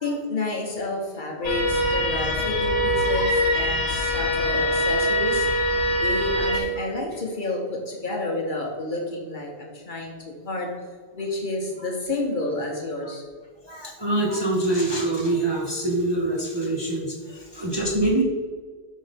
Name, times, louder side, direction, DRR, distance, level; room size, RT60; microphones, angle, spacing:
voice 1, 0.0-5.5 6.0-10.7 11.1-13.2, left 2 dB, 45° left, 0 dB, 1.1 m, -30 dB
sound 1, 1.4-6.6, left 1 dB, 80° left, 1.3 m, -23 dB
voice 2, 13.6-18.2, right 2 dB, 25° right, -2 dB, 0.8 m, -25 dB
5.5 x 3.8 x 5.0 m, 1.5 s
omnidirectional pair, 1.2 m